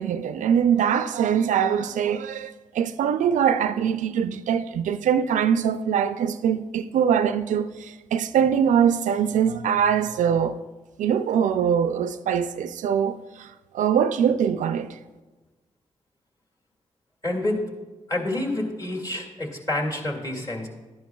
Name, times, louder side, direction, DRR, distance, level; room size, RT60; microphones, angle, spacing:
voice 1, 0.0-10.6 11.0-13.5 13.7-15.0, right 8 dB, 80° right, 0.4 m, -23 dB
voice 2, 17.2-17.6 18.1-20.7, left 1 dB, 30° left, 2.1 m, -28 dB
11.5 x 10.5 x 2.3 m
cardioid pair, 60°, 13 cm